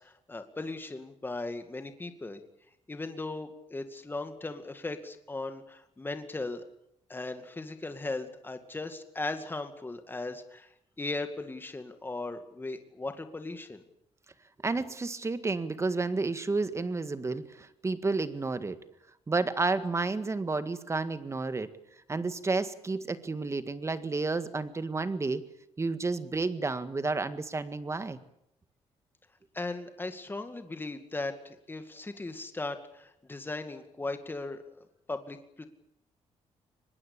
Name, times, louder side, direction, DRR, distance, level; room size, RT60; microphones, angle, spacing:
voice 1, 0.0-2.4 2.9-6.6 7.1-10.7 11.0-13.8 29.5-35.7, left 2 dB, 20° left, 7 dB, 2.3 m, -38 dB
voice 2, 14.6-18.8 19.3-21.7 22.1-25.4 25.8-28.2, right 3 dB, 25° right, 11 dB, 1.8 m, -31 dB
24.0 x 21.0 x 8.6 m, 0.76 s
cardioid pair, 110°, 12 cm